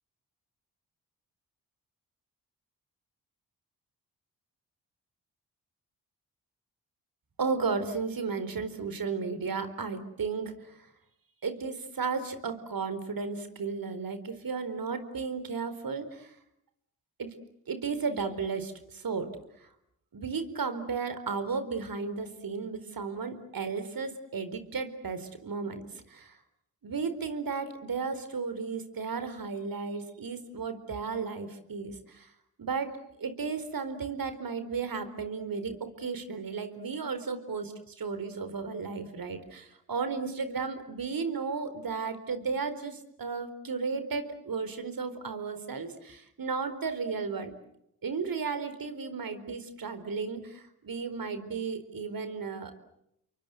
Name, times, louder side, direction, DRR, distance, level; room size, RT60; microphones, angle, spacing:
voice 1, 7.4-10.9 11.4-16.3 17.2-17.3 17.7-19.3 19.6-19.7 20.1-26.4 26.8-32.3 32.6-32.9 33.2-47.5 48.0-52.7, right 5 dB, 55° right, 10 dB, 4.5 m, -34 dB
30.0 x 23.5 x 8.0 m, 0.77 s
hypercardioid pair, 45°, 42 cm